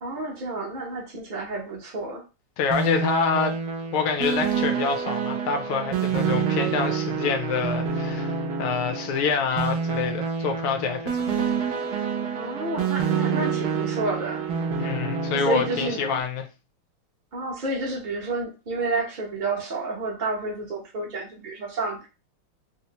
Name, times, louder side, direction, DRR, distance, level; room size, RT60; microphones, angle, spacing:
voice 1, 0.0-2.2 12.3-14.4 15.3-16.0 17.3-22.1, right 3 dB, 45° right, 0.6 m, -30 dB
voice 2, 2.6-3.6 3.9-8.3 8.6-11.5 14.8-16.5, left 6 dB, 75° left, 1.4 m, -26 dB
sound 1, 2.7-16.2, right 6 dB, 80° right, 0.8 m, -27 dB
4.1 x 2.1 x 2.8 m
omnidirectional pair, 2.4 m